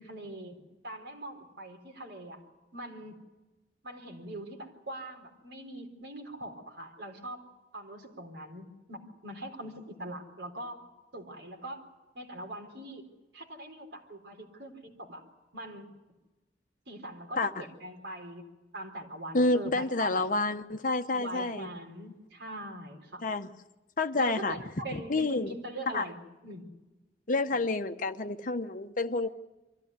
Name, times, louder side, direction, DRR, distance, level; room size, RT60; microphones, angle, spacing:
voice 1, 0.0-2.4 2.7-3.2 3.8-7.4 7.7-10.8 11.1-11.8 12.1-13.1 13.3-15.2 15.5-15.9 16.9-18.5 18.7-20.3 21.2-23.3 24.1-26.7, right 1 dB, 65° right, 4.1 m, -42 dB
voice 2, 19.3-21.7 23.2-23.5 24.0-24.6 24.9-25.5 25.9-26.1 27.3-29.3, left 2 dB, 45° left, 0.9 m, -29 dB
24.0 x 14.5 x 9.5 m
head